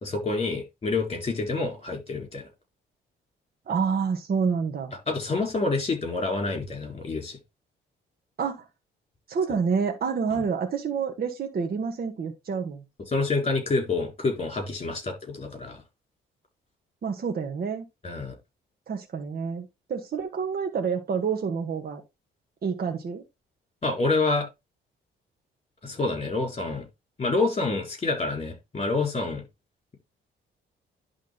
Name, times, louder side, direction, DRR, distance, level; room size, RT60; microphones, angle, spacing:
voice 1, 0.0-2.5 5.1-7.4 10.3-10.4 13.1-15.8 18.0-18.3 23.8-24.5 25.8-26.9 27.2-29.4, left 3 dB, 30° left, 4.2 m, -27 dB
voice 2, 3.7-4.9 8.4-8.7 9.3-12.8 17.0-17.8 18.9-22.0 22.6-23.2, right 6 dB, 50° right, 1.7 m, -28 dB
11.0 x 3.7 x 3.9 m
cardioid pair, 90°, 20 cm